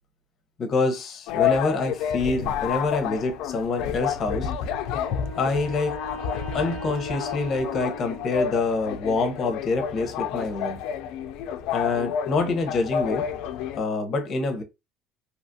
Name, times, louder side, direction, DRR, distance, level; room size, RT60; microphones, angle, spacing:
voice 1, 0.6-4.5 5.3-6.0 6.5-10.8 11.7-13.3 13.8-14.6, left 3 dB, 35° left, 0.7 m, -26 dB
sound 1, 1.3-13.8, left 8 dB, 70° left, 0.3 m, -30 dB
Wind instrument woodwind instrument, 4.6-8.8, equal, 75° right, 1.0 m, -40 dB
2.8 x 2.4 x 2.5 m
cardioid pair, 155°, 0 cm